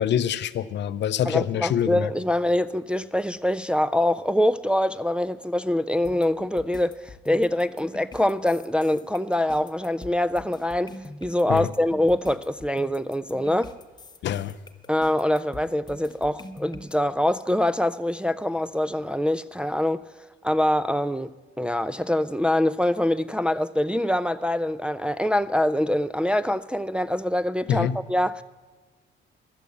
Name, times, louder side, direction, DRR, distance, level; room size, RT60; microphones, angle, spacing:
voice 1, 0.0-2.1 11.5-11.7 14.2-14.5 27.7-28.0, left 9 dB, 65° left, 0.6 m, -25 dB
voice 2, 1.3-7.0 7.3-10.9 11.2-13.7 14.9-20.0 20.4-28.4, left 1 dB, 5° right, 0.3 m, -24 dB
sound 1, 6.0-16.9, left 2 dB, 20° left, 1.0 m, -44 dB
12.5 x 8.1 x 8.4 m
cardioid pair, 90°, 20 cm